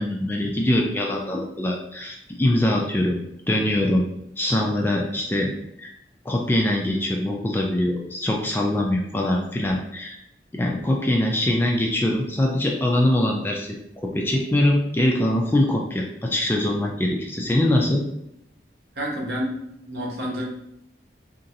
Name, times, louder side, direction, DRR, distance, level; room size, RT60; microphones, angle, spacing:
voice 1, 0.0-3.2 3.5-4.0 4.4-5.5 5.8-5.9 6.3-10.2 10.5-18.0, left 1 dB, 10° left, -1 dB, 0.3 m, -23 dB
voice 2, 19.0-20.5, equal, 65° right, -3 dB, 0.8 m, -29 dB
3.0 x 2.5 x 2.7 m, 0.77 s
head